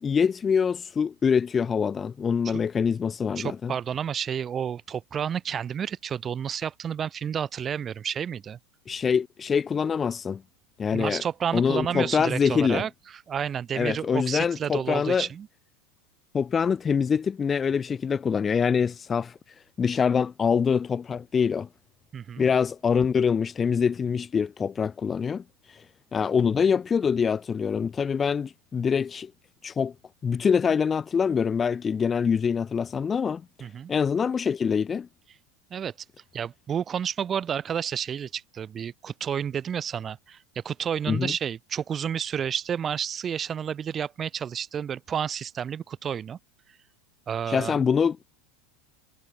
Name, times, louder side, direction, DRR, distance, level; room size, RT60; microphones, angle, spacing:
voice 1, 0.0-3.7 8.9-10.4 10.8-11.2 11.5-12.9 13.8-15.3 16.3-19.4 19.8-21.7 22.4-25.8 26.1-29.3 29.6-29.9 30.2-35.1 41.1-41.3 47.5-48.2, left 6 dB, 25° left, 0.4 m, -25 dB
voice 2, 3.4-8.6 10.9-15.5 22.1-22.5 33.6-33.9 35.7-35.9 36.3-46.4 47.3-47.8, right 8 dB, 30° right, 3.4 m, -30 dB
figure-of-eight pair, 80°, 0 cm